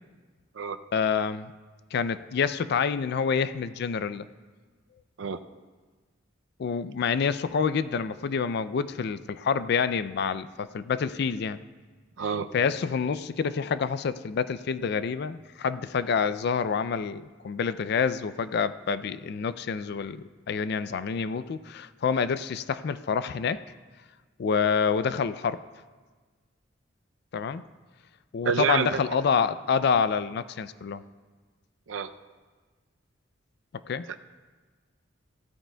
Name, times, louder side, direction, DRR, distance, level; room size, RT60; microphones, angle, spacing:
voice 1, 0.9-1.5 1.9-4.3 6.6-11.6 12.5-23.6 24.4-25.6 27.3-27.6 28.3-31.0 33.9-34.1, left 6 dB, 60° left, 14 dB, 0.4 m, -27 dB
voice 2, 12.2-12.5 28.5-29.0 31.9-32.1, right 6 dB, 85° right, 10 dB, 0.5 m, -27 dB
16.0 x 13.0 x 2.3 m, 1.4 s
head